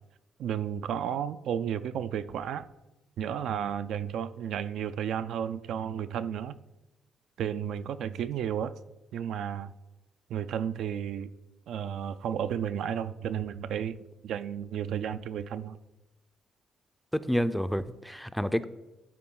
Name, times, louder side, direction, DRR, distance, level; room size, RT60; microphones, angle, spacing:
voice 1, 0.4-2.7 3.2-6.6 7.4-8.7 9.1-9.7 10.3-11.3 11.7-15.8, right 9 dB, 75° right, 12 dB, 0.3 m, -33 dB
voice 2, 17.1-18.6, equal, ahead, 13 dB, 0.4 m, -29 dB
12.0 x 4.2 x 3.8 m, 1.0 s
cardioid pair, 90°, 0 cm